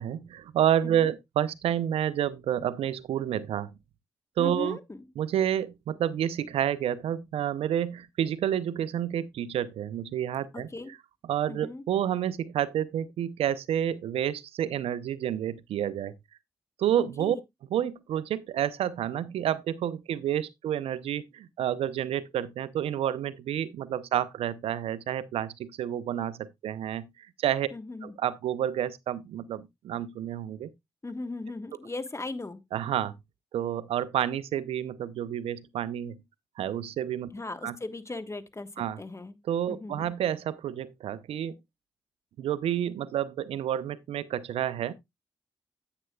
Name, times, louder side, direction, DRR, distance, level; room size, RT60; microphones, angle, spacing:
voice 1, 0.0-3.7 4.4-4.8 5.2-10.7 11.2-16.1 16.8-17.4 17.7-27.7 28.0-30.7 32.7-33.2 33.5-36.2 36.6-37.3 37.6-37.8 38.8-39.0 39.4-41.5 42.4-44.9, right 10 dB, 85° right, 0.5 m, -29 dB
voice 2, 4.4-5.0 10.5-10.9 11.5-11.8 17.2-17.4 27.7-28.1 31.0-32.6 37.3-38.7 39.0-39.4 39.7-40.1, left 2 dB, 30° left, 1.2 m, -38 dB
9.7 x 8.8 x 2.3 m
supercardioid pair, 45°, 10 cm